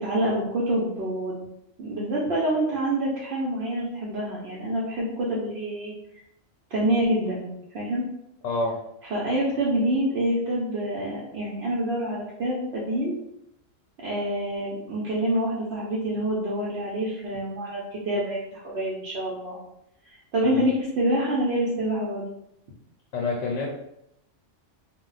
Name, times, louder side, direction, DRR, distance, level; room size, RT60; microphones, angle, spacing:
voice 1, 0.0-1.4 1.8-5.9 6.7-7.4 7.7-8.0 9.1-13.1 14.0-19.6 20.1-22.2, right 1 dB, 60° right, -6 dB, 0.9 m, -26 dB
voice 2, 8.4-8.8 20.5-20.7 23.1-23.7, left 3 dB, 85° left, 0 dB, 0.9 m, -27 dB
2.3 x 2.1 x 3.8 m, 0.80 s
omnidirectional pair, 1.3 m